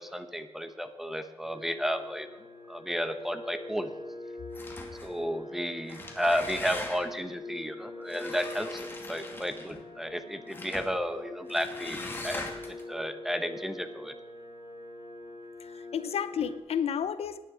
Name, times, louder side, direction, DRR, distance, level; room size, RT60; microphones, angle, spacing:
voice 1, 0.0-3.9 5.0-14.1, equal, 5° right, 9 dB, 1.1 m, -33 dB
sound 1, 1.4-16.6, left 2 dB, 50° left, 4.2 m, -44 dB
sound 2, 4.5-5.2 5.8-7.2 8.1-9.8 10.5-10.9 11.5-12.8, left 2 dB, 20° left, 2.3 m, -41 dB
voice 2, 15.6-17.4, left 8 dB, 70° left, 12 dB, 0.7 m, -31 dB
17.5 x 9.9 x 5.0 m, 1.2 s
wide cardioid pair, 120°, 11 cm